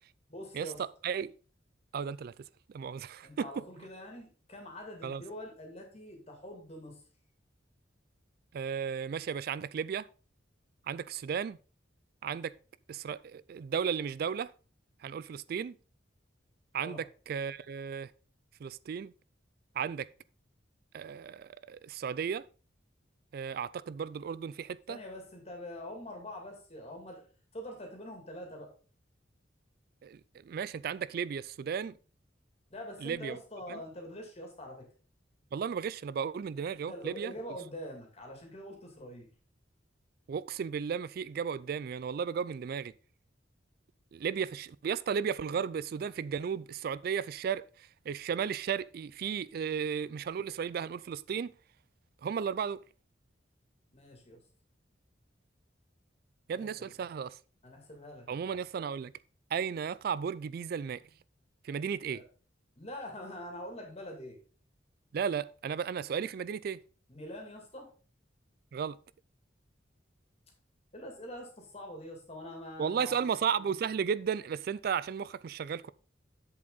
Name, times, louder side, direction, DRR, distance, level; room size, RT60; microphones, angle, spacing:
voice 1, 0.3-0.8 3.2-7.0 16.8-17.0 24.9-27.2 27.5-28.7 32.7-34.9 36.9-39.3 53.9-54.4 56.5-56.9 57.6-58.6 62.1-62.2 62.8-64.4 67.1-67.9 70.9-73.2, equal, 35° left, 2.5 m, -44 dB
voice 2, 1.9-2.3 2.7-3.5 5.0-5.2 8.5-10.1 10.9-11.6 12.2-12.5 12.9-14.5 15.0-15.7 16.7-18.1 18.6-19.1 19.8-20.1 20.9-22.4 23.3-25.0 30.0-31.9 33.0-33.4 33.7-33.8 35.5-37.3 40.3-42.9 44.1-51.5 52.2-52.8 56.5-57.4 58.3-59.1 59.5-61.0 61.6-62.2 65.1-66.8 68.7-69.0 72.8-75.9, right 7 dB, 55° right, 0.3 m, -34 dB
7.7 x 7.2 x 4.0 m
head